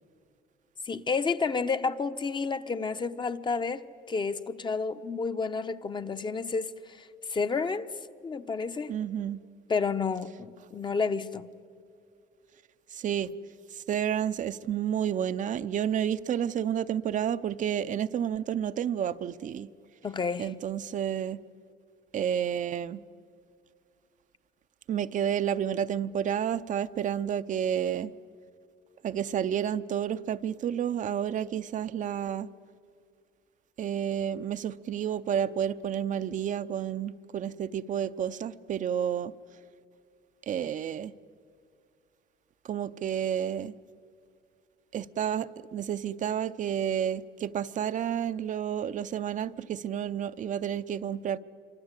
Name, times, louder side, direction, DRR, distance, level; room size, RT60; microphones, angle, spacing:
voice 1, 0.9-6.7 7.0-7.9 8.2-8.9 9.7-11.5 20.0-20.5, left 4 dB, 25° left, 0.9 m, -30 dB
voice 2, 8.9-9.4 12.9-13.3 13.7-19.7 20.4-21.4 22.1-23.0 24.9-28.1 29.0-32.5 33.8-39.3 40.5-41.1 42.6-43.7 44.9-51.4, right 9 dB, 50° right, 0.7 m, -30 dB
26.0 x 25.0 x 8.3 m
cardioid pair, 110°, 17 cm